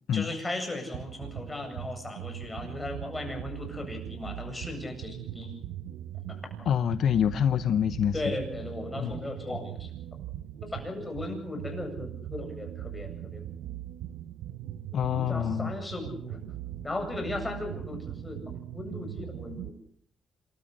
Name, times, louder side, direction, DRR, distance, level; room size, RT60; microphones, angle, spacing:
voice 1, 0.1-5.5 8.1-9.9 10.6-13.4 14.9-16.4 16.8-18.4 18.7-19.7, left 2 dB, 20° left, 4 dB, 7.9 m, -36 dB
sound 1, 0.9-19.7, right 12 dB, 85° right, 1.0 m, -40 dB
voice 2, 6.7-8.2 9.0-9.1 14.9-15.7, left 9 dB, 65° left, 13 dB, 0.8 m, -26 dB
28.0 x 13.5 x 8.0 m, 0.62 s
cardioid pair, 90°, 0 cm